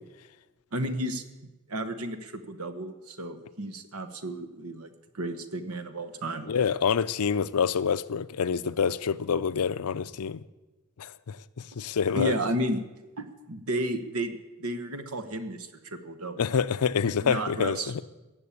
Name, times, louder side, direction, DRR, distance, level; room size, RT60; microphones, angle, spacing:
voice 1, 0.7-1.2 1.7-6.5 12.1-12.8 13.2-16.4 17.2-17.9, right 1 dB, 75° right, 1.3 m, -32 dB
voice 2, 6.5-10.4 11.0-11.4 11.8-12.4 16.4-18.0, left 6 dB, 80° left, 0.5 m, -27 dB
17.5 x 7.2 x 8.5 m
head